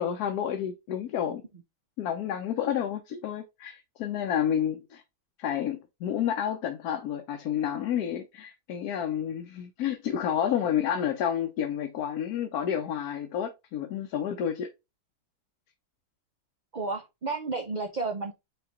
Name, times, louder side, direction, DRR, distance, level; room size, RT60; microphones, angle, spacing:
voice 1, 0.0-1.4 2.0-5.0 5.4-14.7, left 9 dB, 90° left, 1.2 m, -30 dB
voice 2, 16.7-18.3, right 3 dB, 65° right, 0.4 m, -32 dB
5.7 x 2.3 x 3.8 m
omnidirectional pair, 1.6 m